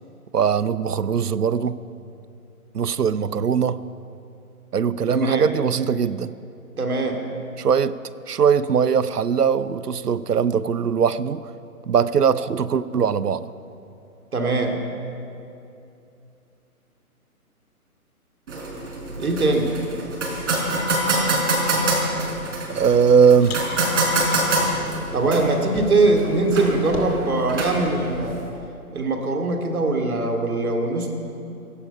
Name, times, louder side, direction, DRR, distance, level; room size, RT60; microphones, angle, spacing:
voice 1, 0.3-1.8 2.7-3.8 4.7-6.3 7.6-8.0 8.3-11.4 11.8-13.5 22.7-23.6, right 7 dB, 85° right, 16 dB, 0.7 m, -20 dB
voice 2, 5.1-5.5 6.8-7.2 14.3-14.8 19.2-19.8 25.1-28.4 28.9-31.1, right 2 dB, 70° right, 3 dB, 2.7 m, -22 dB
sound 1, 18.5-28.5, right 2 dB, 50° right, 4.5 m, -26 dB
Car, 23.4-26.2 26.5-28.3, left 4 dB, 40° left, 2.2 m, -39 dB
16.5 x 15.0 x 5.5 m, 2.7 s
figure-of-eight pair, 140°, 45 cm